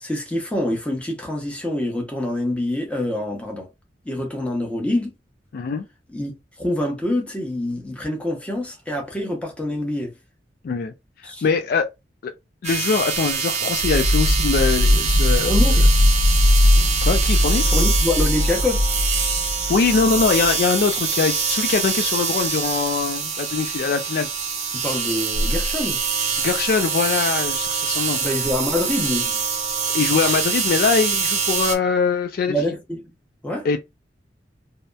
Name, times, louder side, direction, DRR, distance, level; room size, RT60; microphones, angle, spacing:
voice 1, 0.0-3.7 4.0-5.1 6.1-6.3 6.6-10.1 11.2-11.4 15.4-15.9 17.7-18.9 24.7-26.0 28.2-29.4 30.2-30.4 32.5-33.1 33.4-33.7, left 1 dB, 5° left, 0.7 m, -26 dB
voice 2, 5.5-5.9 10.6-10.9 11.2-11.9 12.2-12.3 12.6-15.5 17.0-17.6 19.7-24.3 26.4-28.2 29.9-32.5 33.6-33.8, left 5 dB, 55° left, 0.3 m, -22 dB
sound 1, 12.6-31.8, right 5 dB, 40° right, 0.6 m, -24 dB
sound 2, 13.8-20.5, left 1 dB, 90° left, 0.7 m, -19 dB
2.7 x 2.0 x 2.2 m
head